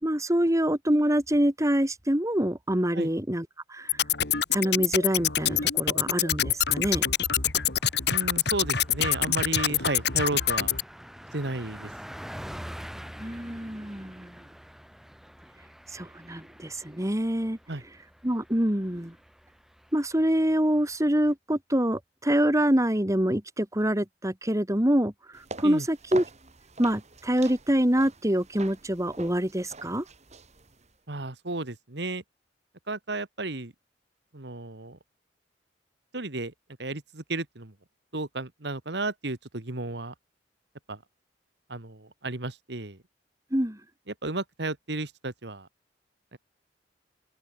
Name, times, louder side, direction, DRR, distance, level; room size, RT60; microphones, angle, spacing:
voice 1, 0.0-4.0 4.5-7.0 13.2-14.4 15.9-17.6 18.2-19.1 19.9-26.2 26.8-30.0 43.5-43.8, right 1 dB, 20° right, 2.5 m, -26 dB
sound 1, 3.9-10.8, left 10 dB, 65° left, 2.7 m, -26 dB
Car passing by, 7.2-21.3, equal, ahead, 5.4 m, -47 dB
voice 2, 8.1-10.7 11.3-11.9 17.7-17.8 25.6-25.9 31.1-32.2 32.9-33.7 34.3-35.0 36.1-36.5 36.8-37.7 38.1-40.1 40.9-41.0 41.7-43.0 44.1-45.7 46.3-46.4, right 2 dB, 65° right, 2.0 m, -33 dB
sound 2, 25.3-31.0, right 3 dB, 40° right, 3.6 m, -44 dB
open air
head